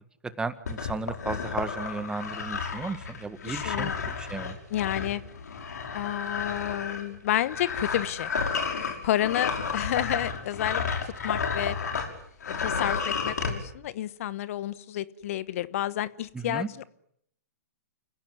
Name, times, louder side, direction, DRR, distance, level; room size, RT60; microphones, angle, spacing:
voice 1, 0.4-3.9 4.2-4.5 16.3-16.7, right 3 dB, 10° right, 12 dB, 1.7 m, -34 dB
sound 1, 0.7-12.1 12.4-13.5, left 5 dB, 75° left, 6.2 m, -32 dB
voice 2, 3.4-4.1 4.7-5.2 5.9-8.3 9.0-11.8 12.5-16.9, left 12 dB, 55° left, 16 dB, 1.3 m, -30 dB
29.5 x 17.0 x 9.7 m, 0.72 s
hypercardioid pair, 125°, 9 cm